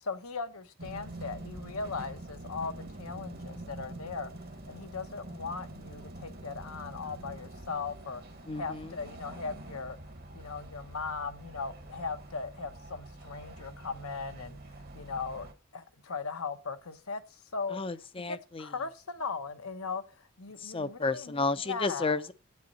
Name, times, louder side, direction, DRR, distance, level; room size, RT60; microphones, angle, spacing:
voice 1, 0.0-4.3 4.7-8.2 8.5-10.0 10.3-15.5 15.7-17.8 18.3-22.2, left 4 dB, 80° left, 1.0 m, -38 dB
sound 1, 0.8-15.5, right 1 dB, 45° right, 1.1 m, -46 dB
voice 2, 8.5-8.9 17.7-18.7 20.6-22.3, left 3 dB, 25° left, 0.5 m, -32 dB
9.5 x 8.8 x 4.1 m
head